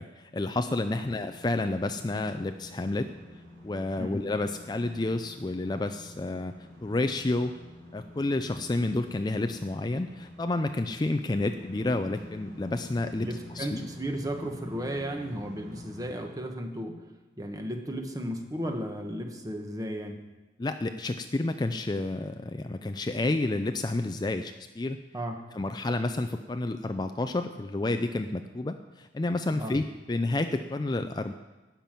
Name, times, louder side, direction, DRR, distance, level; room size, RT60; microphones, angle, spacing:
voice 1, 0.0-3.1 3.6-6.5 6.8-7.6 7.9-13.3 13.6-13.8 20.6-25.0 25.5-29.8 30.1-31.3, left 2 dB, 25° left, 8 dB, 0.4 m, -30 dB
sound 1, 1.2-16.0, left 1 dB, 50° right, 4.7 m, -48 dB
voice 2, 13.2-17.0 17.4-20.2 25.1-25.4 29.6-29.7, equal, 20° right, 4 dB, 1.2 m, -34 dB
12.5 x 6.0 x 8.9 m, 1.1 s
head